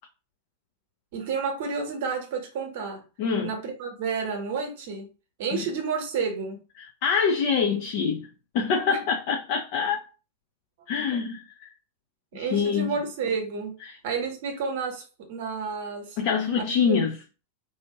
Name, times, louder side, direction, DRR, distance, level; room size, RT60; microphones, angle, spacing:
voice 1, 1.1-3.0 3.4-5.1 5.4-6.6 8.9-9.0 11.1-11.2 12.3-13.8 14.0-16.2 16.6-17.0, right 5 dB, 55° right, 1.0 m, -31 dB
voice 2, 3.2-3.5 5.5-5.6 6.8-8.3 8.5-10.0 10.9-11.7 12.3-13.0 13.8-14.0 16.2-17.2, left 6 dB, 45° left, 0.5 m, -25 dB
2.7 x 2.4 x 2.9 m
figure-of-eight pair, 90°, 0 cm